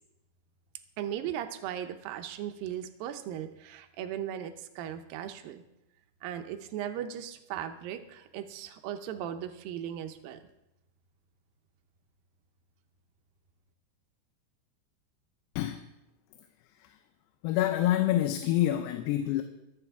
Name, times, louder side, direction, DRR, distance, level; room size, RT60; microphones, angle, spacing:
voice 1, 1.0-5.6 6.2-10.4, right 10 dB, 75° right, 8 dB, 2.3 m, -37 dB
voice 2, 15.6-15.9 16.8-17.0 17.4-19.4, left 13 dB, 90° left, 7 dB, 2.8 m, -27 dB
23.5 x 8.0 x 3.5 m, 0.90 s
omnidirectional pair, 4.7 m